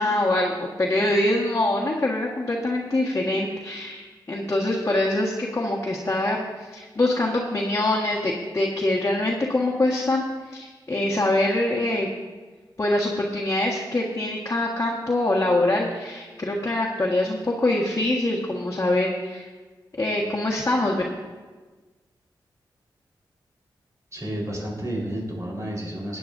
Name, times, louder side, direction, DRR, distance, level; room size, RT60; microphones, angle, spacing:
voice 1, 0.0-12.1 12.8-19.5 19.9-21.0, left 1 dB, 35° left, -4 dB, 1.6 m, -24 dB
voice 2, 24.1-26.2, right 1 dB, 40° right, -3 dB, 4.3 m, -31 dB
19.0 x 9.2 x 2.7 m, 1.3 s
wide cardioid pair, 95°, 8 cm